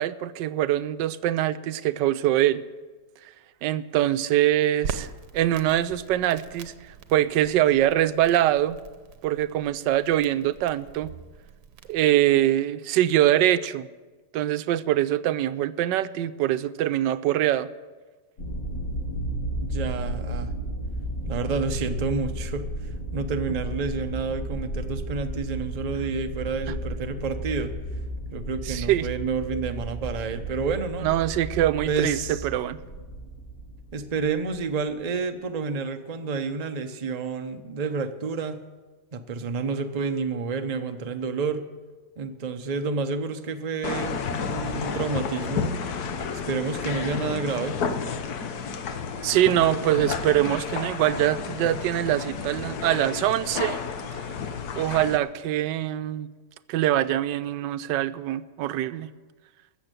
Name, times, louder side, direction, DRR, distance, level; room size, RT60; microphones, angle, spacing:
voice 1, 0.0-2.6 3.6-5.1 5.3-6.7 7.1-8.8 9.2-11.1 11.9-13.9 14.3-17.7 28.7-29.1 31.0-32.8 49.2-53.8 54.8-56.3 56.7-59.1, right 13 dB, 90° right, 14 dB, 1.3 m, -23 dB
Crackle, 4.8-12.1, right 7 dB, 70° right, 1.3 m, -41 dB
sound 1, 18.4-34.8, right 1 dB, 90° left, 4.1 m, -33 dB
voice 2, 19.6-20.5 21.3-27.7 28.3-31.1 31.8-32.4 33.9-38.6 39.1-41.6 42.2-45.7 46.5-47.8, right 4 dB, 35° right, 6 dB, 0.6 m, -29 dB
sound 2, 43.8-55.2, left 5 dB, 65° left, 1.4 m, -31 dB
14.5 x 7.2 x 9.0 m, 1.3 s
omnidirectional pair, 1.9 m